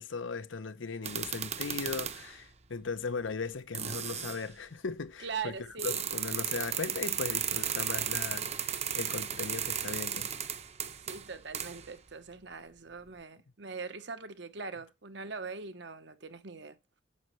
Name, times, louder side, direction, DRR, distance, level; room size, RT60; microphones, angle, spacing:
voice 1, 0.0-5.5 5.8-10.3, left 4 dB, 85° left, 0.8 m, -38 dB
sound 1, 1.0-2.3 3.3-3.4 3.7-4.4 5.8-11.9, right 9 dB, 35° right, 0.8 m, -35 dB
voice 2, 5.2-6.0 10.8-16.8, right 5 dB, 65° right, 1.0 m, -41 dB
9.7 x 7.4 x 3.2 m
head